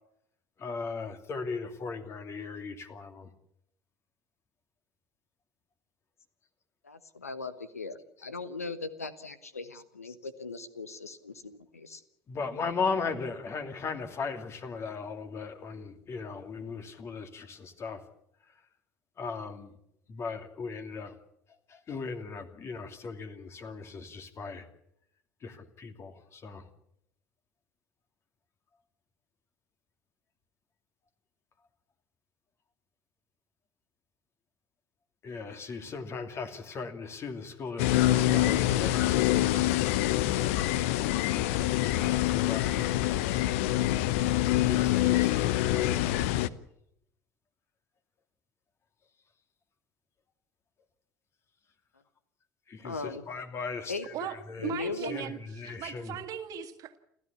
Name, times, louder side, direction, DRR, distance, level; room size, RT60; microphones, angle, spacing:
voice 1, 0.6-3.3 12.3-18.0 19.2-19.7 20.1-21.1 21.7-24.6 25.4-26.6 35.2-40.0 41.8-42.9 44.6-46.3 52.7-53.9 54.3-54.7 55.1-56.1, left 4 dB, 35° left, 7 dB, 2.6 m, -37 dB
voice 2, 6.8-12.0 52.8-53.3 53.9-54.1 54.6-55.3, left 4 dB, 85° left, 14 dB, 1.1 m, -38 dB
sound 1, 37.8-46.5, left 14 dB, 60° left, 0.8 m, -26 dB
voice 3, 54.6-57.0, right 10 dB, 50° right, 8 dB, 2.0 m, -38 dB
29.0 x 14.0 x 8.6 m, 0.77 s
figure-of-eight pair, 65°, 8 cm